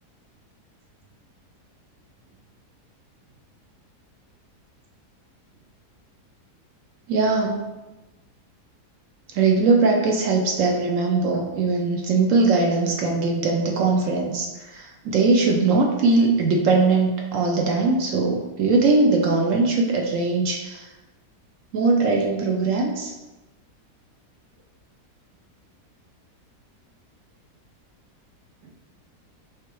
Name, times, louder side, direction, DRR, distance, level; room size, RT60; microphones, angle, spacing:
voice 1, 7.1-7.6 9.3-20.9 21.7-23.1, right 3 dB, 70° right, 1 dB, 0.8 m, -21 dB
4.5 x 3.6 x 3.0 m, 1.1 s
omnidirectional pair, 1.8 m